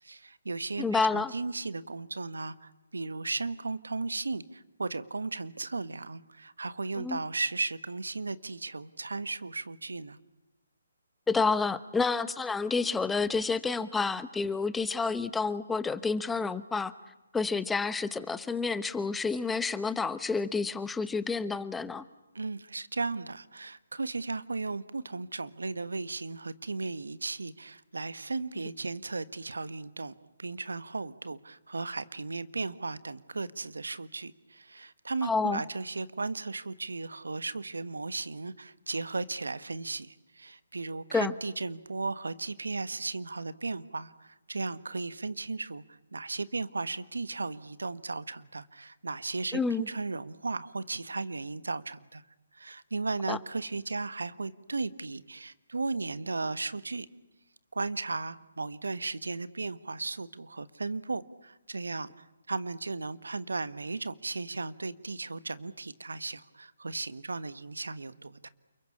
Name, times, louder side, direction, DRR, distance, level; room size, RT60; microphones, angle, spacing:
voice 1, 0.0-10.2 22.3-30.1 30.4-52.2 52.5-57.1 57.7-68.5, right 3 dB, 75° right, 15 dB, 1.4 m, -36 dB
voice 2, 0.8-1.3 7.0-7.2 11.3-16.9 17.3-22.0 35.2-35.6 41.1-41.3 49.5-49.9 53.3-53.4, left 4 dB, 5° left, 15 dB, 0.9 m, -29 dB
29.5 x 22.5 x 8.6 m, 0.98 s
figure-of-eight pair, 140°, 0 cm